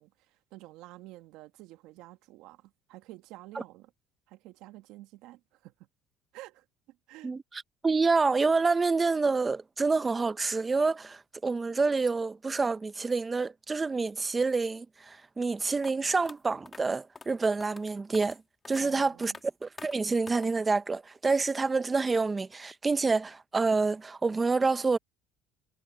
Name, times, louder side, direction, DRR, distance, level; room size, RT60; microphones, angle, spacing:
voice 1, 0.0-3.9 4.3-5.9 6.3-7.3 18.8-19.4, right 17 dB, 75° right, 2.2 m, -50 dB
voice 2, 7.2-18.4 18.7-19.3 19.6-25.0, right 4 dB, 20° right, 1.1 m, -27 dB
sound 1, 15.8-15.9 16.3-16.4 16.7-16.8 17.2-17.3 17.6-17.8 18.1-18.4 18.7-18.8 19.2-19.4 19.8-19.9 20.3-20.5, left 4 dB, 25° left, 4.2 m, -46 dB
supercardioid pair, 95°, 0 cm